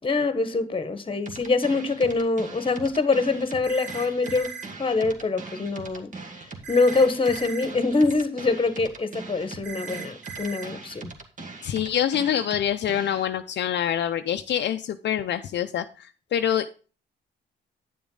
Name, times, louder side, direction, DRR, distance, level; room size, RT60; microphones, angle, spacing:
voice 1, 0.0-4.5 4.8-6.1 6.7-11.1, left 3 dB, 25° left, 1.3 m, -24 dB
sound 1, 1.3-13.3, right 3 dB, 40° right, 1.8 m, -41 dB
sound 2, 3.6-4.7 6.6-7.7 9.6-10.7, right 6 dB, 65° right, 1.5 m, -38 dB
voice 2, 11.6-16.7, left 10 dB, 60° left, 0.6 m, -26 dB
9.4 x 7.1 x 3.9 m
cardioid pair, 90°, 20 cm